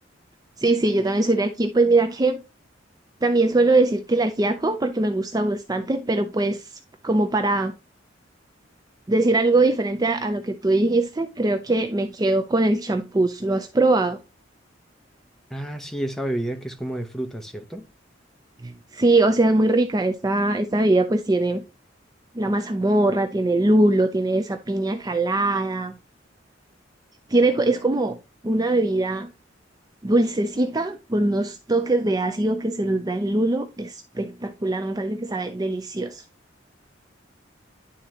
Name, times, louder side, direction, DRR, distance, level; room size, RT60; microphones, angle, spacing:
voice 1, 0.6-2.4 3.2-7.7 9.1-14.2 18.6-21.6 22.3-25.9 27.3-28.2 28.4-29.3 30.0-36.2, right 2 dB, 20° right, 0.5 m, -22 dB
voice 2, 15.5-17.8, right 1 dB, ahead, 0.8 m, -30 dB
11.0 x 3.8 x 2.8 m
head